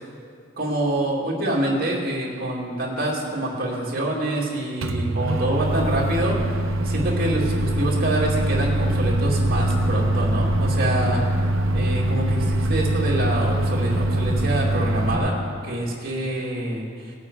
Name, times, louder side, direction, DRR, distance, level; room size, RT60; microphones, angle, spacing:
voice 1, 0.6-6.6 6.8-11.2 11.7-16.9, right 1 dB, 45° right, -3 dB, 2.6 m, -26 dB
Microwave oven, 4.8-15.2, right 1 dB, 85° right, 0.9 m, -23 dB
18.5 x 8.4 x 4.8 m, 2.2 s
head